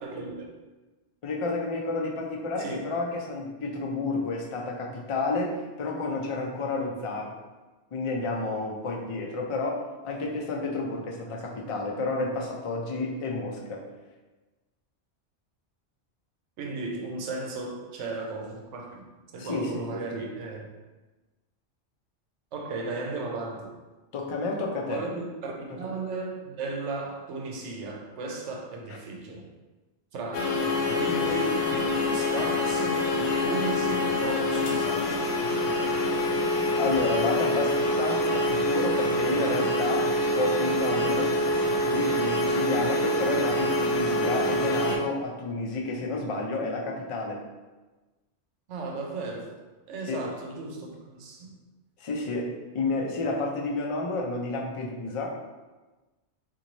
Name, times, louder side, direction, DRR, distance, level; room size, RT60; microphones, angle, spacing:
voice 1, 0.0-0.4 2.6-2.8 11.3-11.4 16.6-20.7 22.5-23.7 24.9-29.5 30.1-30.7 30.9-31.7 32.1-33.0 33.4-35.2 48.7-49.5 49.9-51.5, right 3 dB, 85° right, 1 dB, 1.0 m, -35 dB
voice 2, 1.2-7.3 7.9-13.8 19.4-20.0 24.1-25.0 36.7-40.1 40.3-41.3 41.9-47.4 50.1-50.3 52.0-52.5 52.7-55.3, left 3 dB, 50° left, -1 dB, 0.4 m, -30 dB
sound 1, 30.3-45.0, left 1 dB, 70° left, 0.9 m, -26 dB
3.0 x 2.6 x 3.9 m, 1.2 s
omnidirectional pair, 1.2 m